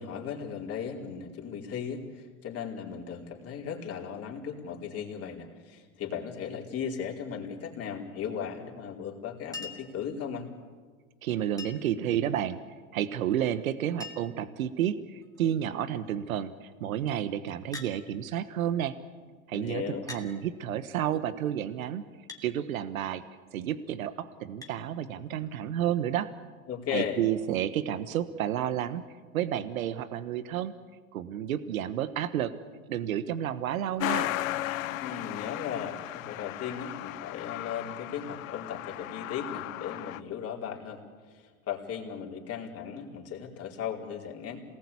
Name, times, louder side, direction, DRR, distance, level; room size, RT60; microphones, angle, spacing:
voice 1, 0.0-10.5 19.5-20.0 26.7-27.2 35.0-41.0 41.3-44.6, left 7 dB, 35° left, 0 dB, 4.6 m, -37 dB
Chink clink, 9.5-10.0 11.6-12.0 13.4-13.5 13.7-13.8 14.0-14.5 15.2-15.6 17.7-18.0 19.0-19.1 20.1-20.3 22.3-22.5 24.6-24.8 26.2-26.3, left 4 dB, 10° left, 2.9 m, -42 dB
voice 2, 11.2-12.6 12.9-18.9 19.5-22.0 22.4-23.2 23.5-26.3 26.9-29.0 29.3-30.7 31.1-32.5 32.9-34.3, right 10 dB, 80° right, 12 dB, 1.3 m, -31 dB
Truck, 34.0-40.2, left 15 dB, 70° left, 1.0 m, -35 dB
27.5 x 19.5 x 8.5 m, 1.5 s
hypercardioid pair, 100°, 41 cm